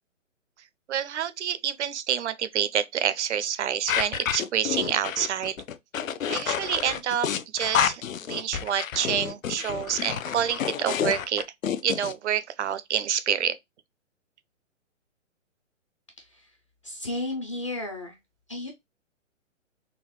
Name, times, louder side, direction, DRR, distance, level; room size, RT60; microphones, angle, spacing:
voice 1, 0.9-5.6 6.3-7.3 7.5-8.0 8.3-11.5 11.8-13.6, right 9 dB, 60° right, 0.5 m, -27 dB
sound 1, 3.9-12.1, left 9 dB, 80° left, 0.5 m, -29 dB
voice 2, 16.2-16.6 16.8-18.2 18.5-18.7, left 2 dB, 25° left, 0.4 m, -33 dB
3.8 x 2.0 x 3.0 m
hypercardioid pair, 140°, 39 cm